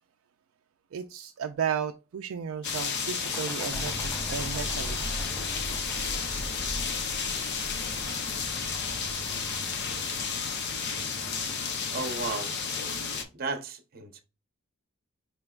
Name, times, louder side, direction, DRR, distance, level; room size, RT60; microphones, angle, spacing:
voice 1, 0.9-5.0 6.4-6.5, right 7 dB, 65° right, 0.4 m, -34 dB
sound 1, 2.6-13.2, left 5 dB, 50° left, 0.7 m, -32 dB
sound 2, 3.2-10.4, left 1 dB, 10° left, 0.3 m, -48 dB
sound 3, 3.7-11.6, right 1 dB, 15° right, 1.0 m, -41 dB
voice 2, 11.9-12.6 13.3-14.2, right 3 dB, 45° right, 0.8 m, -34 dB
5.0 x 3.3 x 2.4 m
head